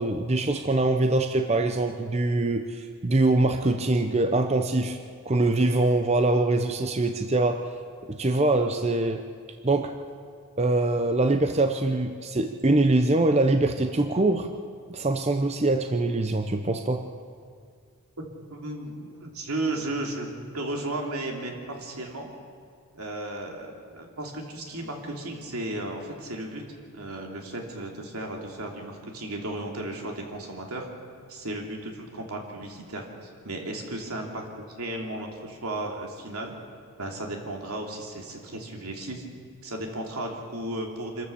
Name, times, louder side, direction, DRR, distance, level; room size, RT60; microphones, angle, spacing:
voice 1, 0.0-5.0 5.3-7.6 8.1-9.2 9.6-9.9 10.6-14.5 14.9-17.0, right 2 dB, 30° right, 7 dB, 0.7 m, -23 dB
voice 2, 18.2-22.3 22.9-26.6 26.9-30.9 31.3-36.5 37.0-39.2 39.6-41.3, right 1 dB, 85° right, 1 dB, 3.1 m, -34 dB
26.0 x 14.5 x 6.9 m, 2.2 s
head